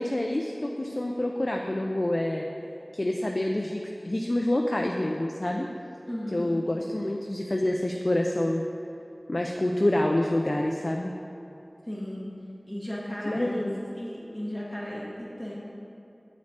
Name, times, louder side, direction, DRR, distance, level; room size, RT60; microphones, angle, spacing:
voice 1, 0.0-2.5 2.9-5.7 6.3-8.6 9.3-11.1 13.3-13.8, left 1 dB, 55° left, 1 dB, 0.4 m, -27 dB
voice 2, 6.1-6.5 11.8-12.3 12.7-13.6 13.9-15.5, equal, ahead, -6 dB, 1.5 m, -35 dB
8.3 x 5.2 x 3.9 m, 2.8 s
wide cardioid pair, 40°, 0 cm